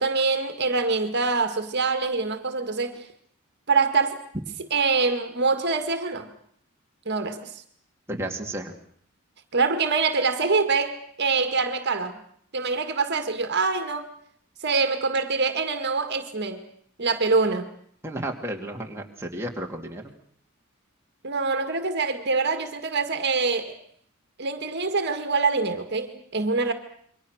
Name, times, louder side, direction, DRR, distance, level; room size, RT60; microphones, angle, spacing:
voice 1, 0.0-3.0 3.7-4.2 4.7-6.3 7.1-7.6 9.5-12.2 12.5-14.1 14.6-16.6 17.0-17.7 21.2-23.7 24.4-26.7, right 4 dB, 55° right, 8 dB, 2.0 m, -25 dB
voice 2, 8.1-8.7 18.0-20.1, right 1 dB, 10° right, 0 dB, 2.7 m, -33 dB
28.0 x 23.5 x 6.5 m, 0.64 s
head